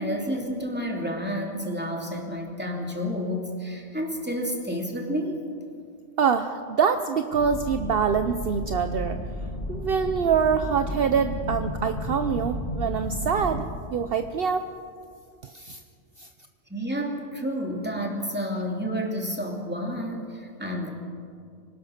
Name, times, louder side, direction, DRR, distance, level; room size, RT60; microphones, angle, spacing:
voice 1, 0.0-5.4 16.7-20.9, equal, 10° right, 0 dB, 2.9 m, -30 dB
voice 2, 6.2-9.2 9.7-14.7 15.4-15.8 16.2-16.3, right 6 dB, 60° right, 8 dB, 0.9 m, -25 dB
sound 1, 7.3-13.6, left 1 dB, 40° left, 6.0 m, -33 dB
25.5 x 18.5 x 6.6 m, 2.3 s
omnidirectional pair, 1.2 m